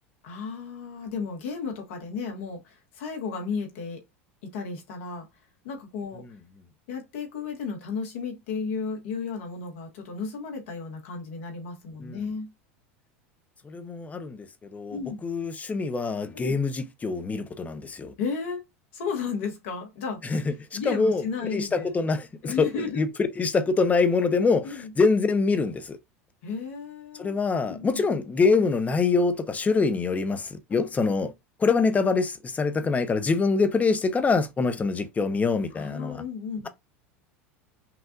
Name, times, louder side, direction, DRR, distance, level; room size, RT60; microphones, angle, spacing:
voice 1, 0.2-4.0 4.5-5.3 5.6-6.2 6.9-12.5 14.9-15.2 16.3-16.6 18.2-18.6 18.9-21.9 22.4-23.0 24.6-24.9 26.4-27.4 27.6-28.0 30.7-31.2 35.7-36.7, left 5 dB, 70° left, 1.5 m, -34 dB
voice 2, 13.6-18.1 20.2-21.2 21.5-22.7 22.9-23.1 23.4-26.0 27.2-31.3 31.6-36.2, left 4 dB, 20° left, 0.7 m, -25 dB
5.7 x 2.5 x 2.4 m
hypercardioid pair, 90°, 7 cm